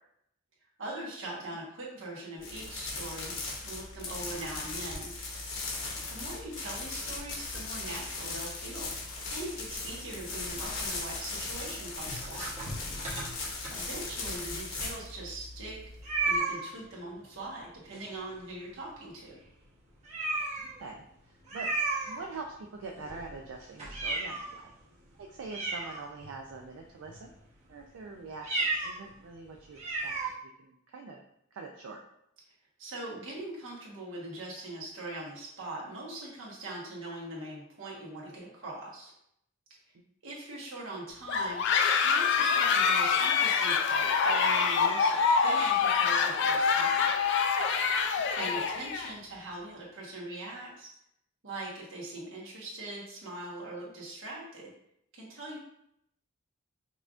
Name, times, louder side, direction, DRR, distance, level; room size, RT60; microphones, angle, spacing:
voice 1, 0.8-3.3 3.6-5.1 6.1-8.9 9.3-12.5 13.7-15.8 16.2-19.4 32.8-39.1 40.2-41.6 42.0-47.1 48.3-50.9 51.4-54.7 55.1-55.6, right 2 dB, 70° right, -5 dB, 1.2 m, -41 dB
sound 1, 2.4-16.4, left 3 dB, 85° left, 1.0 m, -38 dB
sound 2, 12.1-14.2 14.8-14.9 15.1-15.2 16.0-16.7 17.9-18.5 18.8-18.9 19.4-19.5 20.0-20.8 21.5-22.6 23.0-24.6 25.1-25.2 25.4-26.5 27.0-27.3 28.3-29.0 29.3-29.4 29.8-30.3, right 3 dB, 35° right, 0.9 m, -34 dB
voice 2, 13.9-14.2 20.6-21.7 22.0-24.7 25.2-27.3 27.7-30.1 30.6-31.2 31.5-32.0 48.4-48.5, right 4 dB, 85° right, 1 dB, 0.4 m, -44 dB
sound 3, 41.3-49.1, left 6 dB, 60° left, 0.3 m, -26 dB
5.4 x 2.4 x 2.4 m, 0.76 s
head